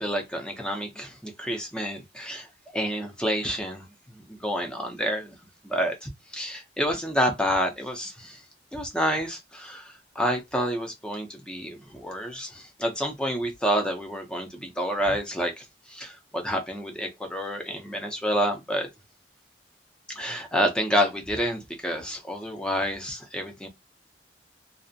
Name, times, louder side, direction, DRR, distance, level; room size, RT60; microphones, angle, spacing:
voice 1, 0.0-2.5 2.7-3.8 4.1-5.4 5.6-8.4 8.7-18.9 20.2-23.7, equal, 5° left, 0.5 m, -29 dB
2.5 x 2.0 x 2.6 m
head